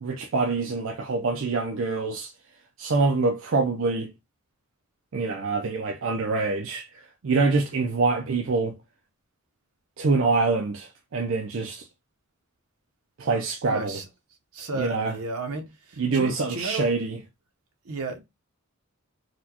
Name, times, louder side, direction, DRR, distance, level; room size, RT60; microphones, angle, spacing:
voice 1, 0.0-2.3 2.8-4.1 5.1-6.9 7.2-8.7 10.0-11.8 13.2-14.0 14.7-15.1 16.0-17.2, right 3 dB, 60° right, 0.4 m, -25 dB
voice 2, 13.7-14.1 14.5-16.9 17.8-18.2, right 3 dB, 80° right, 0.8 m, -33 dB
4.1 x 2.2 x 2.8 m
head